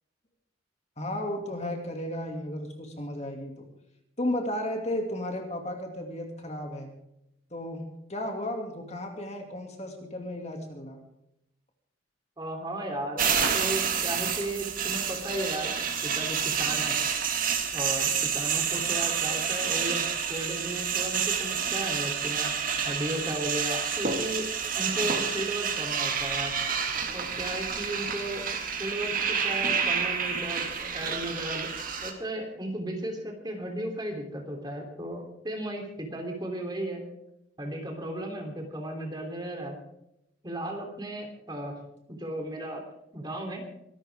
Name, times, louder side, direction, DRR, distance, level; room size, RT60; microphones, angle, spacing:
voice 1, 1.0-3.7 4.2-6.9 7.5-7.8 8.1-11.0, left 1 dB, 35° left, 3 dB, 2.5 m, -34 dB
voice 2, 12.4-15.7 16.0-17.0 17.7-22.5 22.8-26.5 27.1-28.4 28.8-30.7 30.9-31.7 32.0-37.0 37.6-39.8 40.4-41.7 42.1-42.8 43.1-43.6, right 1 dB, 20° right, 2 dB, 3.2 m, -35 dB
sound 1, 13.2-32.1, right 7 dB, 45° right, 2.1 m, -29 dB
24.0 x 12.5 x 3.6 m, 0.81 s
head